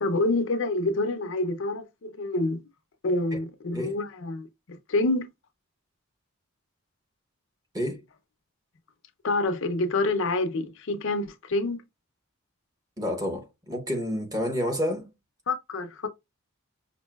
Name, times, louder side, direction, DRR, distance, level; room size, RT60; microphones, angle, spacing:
voice 1, 0.0-2.6 3.0-5.3 9.2-11.8 15.5-16.1, left 2 dB, 60° left, 0.6 m, -27 dB
voice 2, 13.0-15.1, equal, 15° right, 1.0 m, -29 dB
5.3 x 2.6 x 2.3 m
head